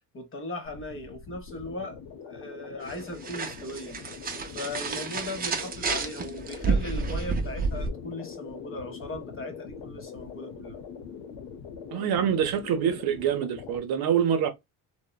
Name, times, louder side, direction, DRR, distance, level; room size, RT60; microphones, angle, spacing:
voice 1, 0.1-4.0 4.5-10.8, left 2 dB, 30° left, 0.7 m, -38 dB
sound 1, 0.6-13.8, left 6 dB, 75° left, 0.7 m, -43 dB
sound 2, 2.8-7.9, right 4 dB, 20° right, 0.5 m, -30 dB
voice 2, 11.9-14.5, right 8 dB, 60° right, 0.7 m, -25 dB
2.9 x 2.1 x 2.2 m
cardioid pair, 95°, 42 cm